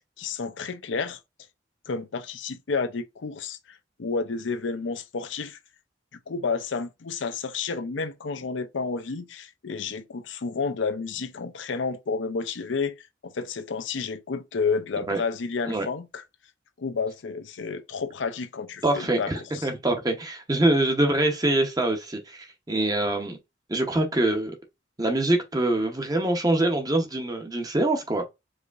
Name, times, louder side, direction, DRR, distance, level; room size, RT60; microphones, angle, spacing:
voice 1, 0.2-1.2 1.9-5.6 6.3-12.9 13.2-16.2 16.8-19.7, left 4 dB, 85° left, 0.6 m, -30 dB
voice 2, 18.8-23.4 23.7-24.5 25.0-28.3, right 1 dB, 20° right, 0.8 m, -24 dB
4.8 x 2.7 x 2.4 m
head